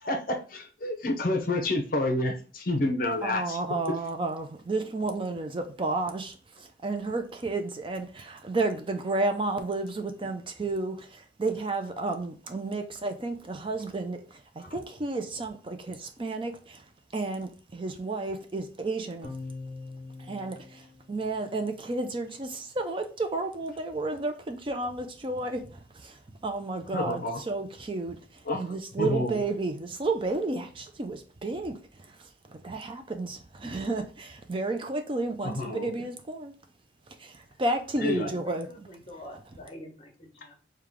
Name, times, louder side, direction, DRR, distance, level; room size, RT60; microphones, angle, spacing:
voice 1, 0.0-3.6 26.9-27.4 28.4-29.4 35.4-35.9 38.0-38.3, left 2 dB, 50° left, 0.7 m, -29 dB
voice 2, 3.2-14.2 14.6-16.8 17.1-19.3 20.3-20.8 21.1-25.6 25.9-26.2 26.4-28.2 28.6-31.8 32.6-36.5 37.2-38.9 39.3-39.4, right 2 dB, 30° right, 0.4 m, -32 dB
sound 1, 19.2-21.8, left 3 dB, 5° right, 1.4 m, -43 dB
voice 3, 38.2-40.6, left 1 dB, 30° left, 1.3 m, -46 dB
4.8 x 2.3 x 3.6 m
head